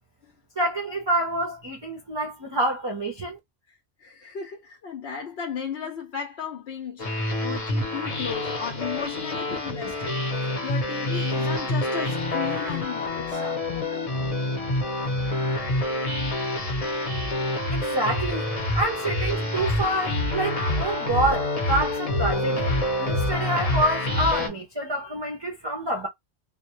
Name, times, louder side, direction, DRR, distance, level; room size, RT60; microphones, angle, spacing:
voice 1, 0.6-3.4 17.7-18.5 18.7-22.7 23.0-26.1, right 1 dB, 35° right, 0.4 m, -27 dB
voice 2, 3.7-10.2 10.6-14.1, left 7 dB, 75° left, 0.9 m, -35 dB
sound 1, 7.0-24.5, left 1 dB, 40° left, 0.7 m, -27 dB
2.2 x 2.1 x 2.9 m
omnidirectional pair, 1.1 m